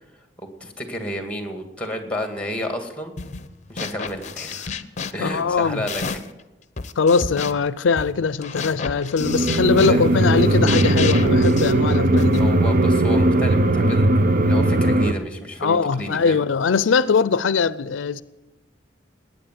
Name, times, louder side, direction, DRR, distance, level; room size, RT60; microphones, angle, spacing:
voice 1, 0.4-3.1 3.7-4.7 5.1-6.0 9.5-10.3 12.4-14.1 14.5-16.4, equal, 5° left, 2.1 m, -30 dB
sound 1, 3.2-3.5 3.8-6.4 6.8-12.5, left 5 dB, 40° left, 0.7 m, -32 dB
voice 2, 5.2-5.8 7.0-12.4 15.6-18.2, left 5 dB, 85° left, 0.5 m, -21 dB
sound 2, 9.2-15.1, right 1 dB, 50° right, 0.7 m, -18 dB
19.0 x 9.2 x 7.5 m
head